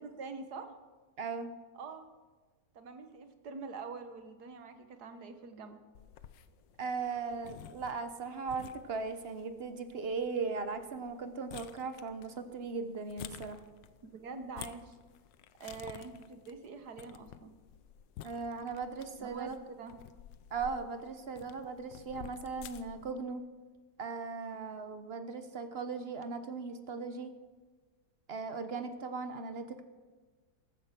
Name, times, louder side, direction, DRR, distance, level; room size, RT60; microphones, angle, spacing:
voice 1, 0.0-0.7 1.8-2.1 2.7-5.8 14.1-15.0 15.6-17.5 19.2-19.9, right 4 dB, 65° right, 8 dB, 1.8 m, -45 dB
voice 2, 1.2-1.5 6.8-13.6 18.2-19.6 20.5-23.4 24.0-27.3 28.3-29.8, right 4 dB, 40° right, 9 dB, 1.0 m, -38 dB
sound 1, 5.9-23.1, left 10 dB, 90° left, 1.4 m, -52 dB
14.5 x 13.5 x 5.9 m, 1.3 s
omnidirectional pair, 1.9 m